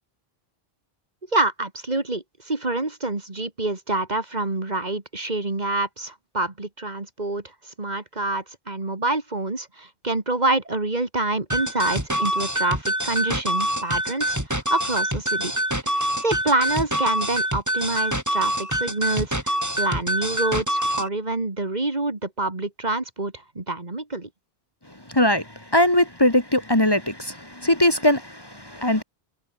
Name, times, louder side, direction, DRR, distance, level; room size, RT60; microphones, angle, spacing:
voice 1, 1.3-15.5 15.9-24.3, right 2 dB, 45° right, 2.4 m, -27 dB
sound 1, 11.5-21.1, equal, 15° right, 6.4 m, -25 dB
voice 2, 25.1-25.4 25.7-29.0, left 1 dB, 25° left, 2.1 m, -20 dB
omnidirectional pair, 1.0 m